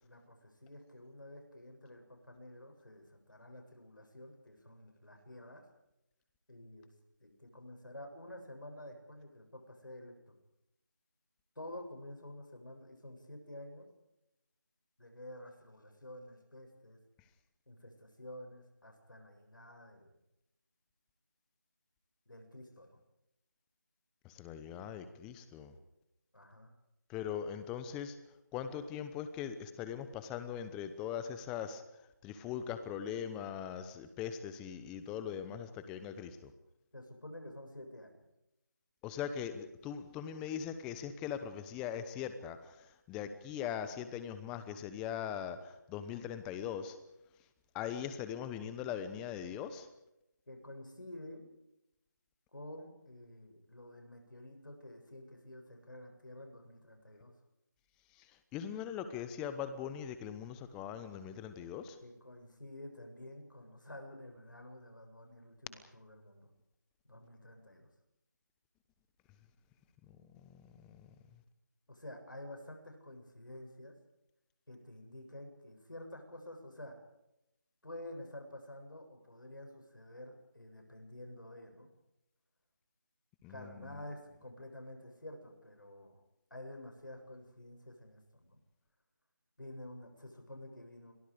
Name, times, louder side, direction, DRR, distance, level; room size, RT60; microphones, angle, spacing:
voice 1, 0.0-5.6 6.5-6.9 7.2-10.3 11.6-13.9 15.0-17.0 17.7-20.2 22.3-23.0 26.3-26.7 36.9-38.2 50.5-51.5 52.5-57.3 62.0-66.5 67.0-67.9 71.9-74.0 74.7-77.0 77.8-81.9 83.5-86.2 86.5-88.6 89.6-91.1, left 1 dB, 90° left, 4 dB, 7.7 m, -50 dB
voice 2, 24.2-25.7 27.1-28.2 28.5-31.8 32.2-36.5 39.0-42.6 43.1-47.0 47.7-49.9 58.5-62.0 70.4-70.6 83.4-83.5, left 8 dB, 5° left, 11 dB, 0.9 m, -40 dB
29.5 x 23.0 x 5.1 m, 0.88 s
figure-of-eight pair, 165°, 10 cm